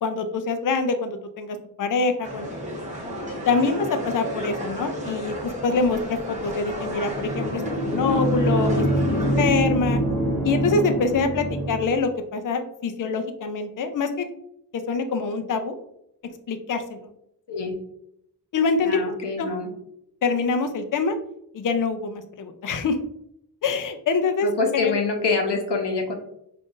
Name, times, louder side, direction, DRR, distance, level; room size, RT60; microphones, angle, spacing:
voice 1, 0.0-2.6 3.5-10.0 10.4-14.3 14.7-15.7 16.5-17.1 18.5-19.0 19.4-19.5 20.2-21.2 21.5-23.0 23.6-24.9, left 4 dB, 50° left, 8 dB, 0.5 m, -25 dB
sound 1, 2.2-9.4, equal, 20° right, 1.0 m, -33 dB
sound 2, 7.1-12.1, equal, 30° left, 1.2 m, -24 dB
voice 2, 18.8-19.7 24.4-26.1, left 4 dB, 80° left, 3 dB, 0.8 m, -25 dB
5.3 x 2.6 x 2.4 m, 0.75 s
wide cardioid pair, 135°, 41 cm